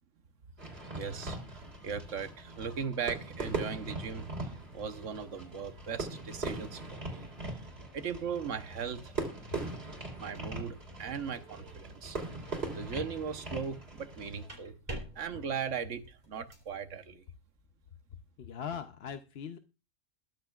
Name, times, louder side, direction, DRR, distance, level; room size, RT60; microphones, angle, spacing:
Fireworks, 0.6-14.5, right 3 dB, 50° right, 3.8 m, -40 dB
voice 1, 0.9-1.4 1.8-7.6 7.9-9.1 9.7-9.8 10.2-12.2 12.7-14.7 15.1-17.2, right 6 dB, 75° right, 9 dB, 1.4 m, -38 dB
sound 1, 14.5-16.7, right 1 dB, 30° right, 3.4 m, -46 dB
voice 2, 18.4-19.6, left 7 dB, 55° left, 8 dB, 0.9 m, -41 dB
21.5 x 7.9 x 2.4 m, 0.30 s
omnidirectional pair, 1.3 m